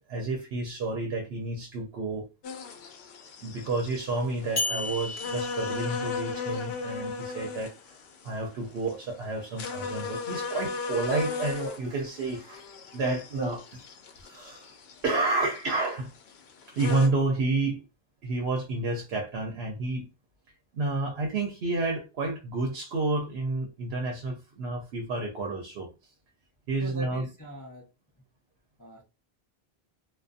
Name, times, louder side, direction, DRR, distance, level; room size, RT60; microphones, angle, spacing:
voice 1, 0.1-2.3 3.4-7.7 8.2-12.6 12.9-13.8 14.2-14.7 15.0-16.1 16.7-17.8 18.2-20.1 20.7-26.1 26.7-27.3, right 3 dB, 80° right, 0.9 m, -30 dB
sound 1, 2.4-17.1, left 5 dB, 75° left, 0.8 m, -37 dB
sound 2, 4.6-6.6, left 3 dB, 40° left, 1.2 m, -34 dB
voice 2, 26.8-27.9 28.8-29.0, equal, 25° left, 0.5 m, -42 dB
2.5 x 2.3 x 2.4 m
omnidirectional pair, 1.0 m